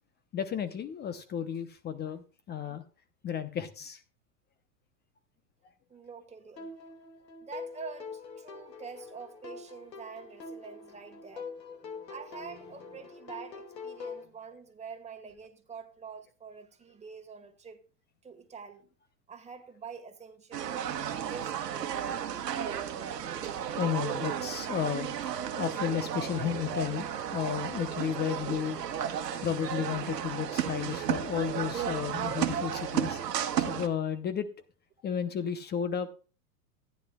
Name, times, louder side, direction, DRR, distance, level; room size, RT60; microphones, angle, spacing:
voice 1, 0.3-2.8 3.2-4.0 22.9-23.0 23.8-25.1 25.6-27.1 27.3-28.8 29.4-33.2 33.7-34.5 35.0-36.1, left 8 dB, 20° left, 0.8 m, -33 dB
voice 2, 5.9-7.0 7.4-11.5 12.1-17.8 18.2-18.9 19.3-20.8 21.2-22.3 35.0-35.1, right 6 dB, 15° right, 1.9 m, -46 dB
sound 1, 6.6-14.2, left 4 dB, 85° left, 2.4 m, -44 dB
sound 2, 20.5-33.9, right 9 dB, 80° right, 1.4 m, -33 dB
15.0 x 10.0 x 2.3 m
hypercardioid pair, 110°, 48 cm